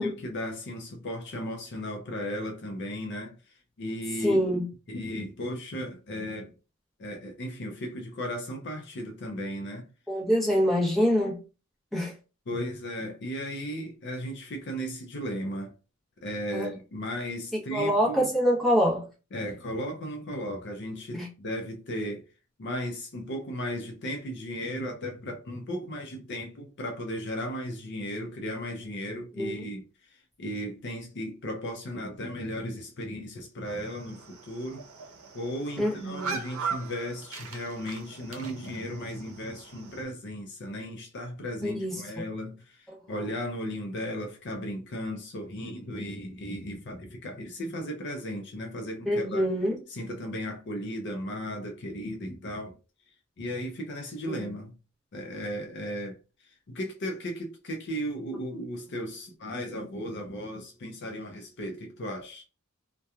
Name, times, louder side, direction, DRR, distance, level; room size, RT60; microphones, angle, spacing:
voice 1, 0.0-3.4 3.8-4.4 4.9-6.5 7.0-9.9 12.5-15.7 16.2-18.3 19.3-22.2 22.6-34.9 35.3-49.5 49.9-52.8 53.4-54.7 55.1-56.2 56.7-62.4, equal, 55° left, 0.5 m, -35 dB
voice 2, 4.2-4.7 10.1-11.4 11.9-12.1 16.5-16.7 17.7-19.0 21.1-21.3 29.4-29.6 35.8-36.4 41.6-41.9 49.1-49.8 54.3-54.5, equal, ahead, 0.8 m, -25 dB
sound 1, 33.7-40.0, right 5 dB, 80° right, 0.6 m, -40 dB
2.8 x 2.2 x 2.3 m
head